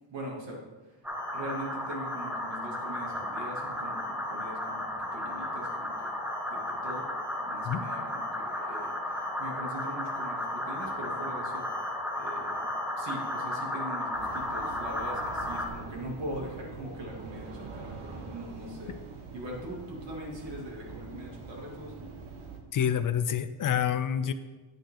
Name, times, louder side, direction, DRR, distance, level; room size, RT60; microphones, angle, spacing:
voice 1, 0.1-0.6 1.3-4.8 5.1-6.1 6.5-7.1 7.4-11.7 12.1-12.7 13.0-19.0 19.3-22.1, right 1 dB, 60° right, -2 dB, 2.8 m, -41 dB
sound 1, 1.0-15.7, left 1 dB, 5° right, 1.3 m, -34 dB
sound 2, 14.1-22.6, right 4 dB, 80° right, 1.6 m, -44 dB
voice 2, 22.7-24.3, left 9 dB, 40° left, 12 dB, 0.5 m, -27 dB
9.6 x 8.7 x 3.9 m, 1.2 s
cardioid pair, 135°, 50 cm